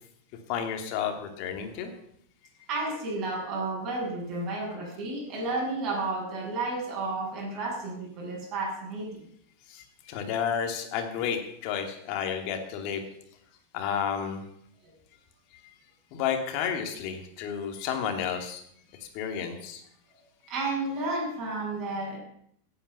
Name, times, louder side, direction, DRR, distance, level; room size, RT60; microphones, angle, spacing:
voice 1, 0.5-1.9 9.7-13.0 13.7-14.4 16.1-18.6 18.9-19.8, left 8 dB, 40° left, 4 dB, 2.7 m, -31 dB
voice 2, 2.7-9.2 14.8-14.9 20.5-22.2, right 2 dB, 25° right, -3 dB, 7.2 m, -32 dB
17.0 x 9.3 x 7.0 m, 0.69 s
supercardioid pair, 165°, 0 cm